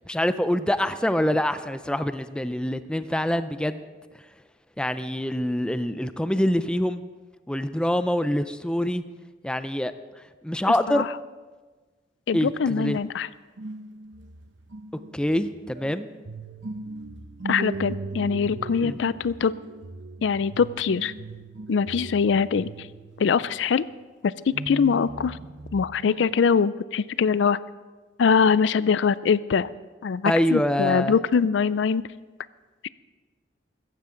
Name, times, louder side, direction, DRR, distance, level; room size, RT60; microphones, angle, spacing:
voice 1, 0.1-3.8 4.8-7.0 7.5-9.0 9.4-9.9 10.4-11.1 12.3-13.0 15.1-16.1 18.8-19.0 30.2-31.1, left 1 dB, 5° left, 11 dB, 0.5 m, -25 dB
voice 2, 12.3-13.3 17.4-19.5 20.2-21.1 21.7-22.9 23.2-23.8 24.2-25.4 25.7-27.6 28.2-29.7 30.0-32.0 32.8-32.9, left 6 dB, 90° left, 17 dB, 0.4 m, -23 dB
sound 1, 13.6-24.0 24.5-26.5, right 2 dB, 85° right, 0.9 m, -38 dB
15.5 x 14.5 x 3.8 m, 1.3 s
head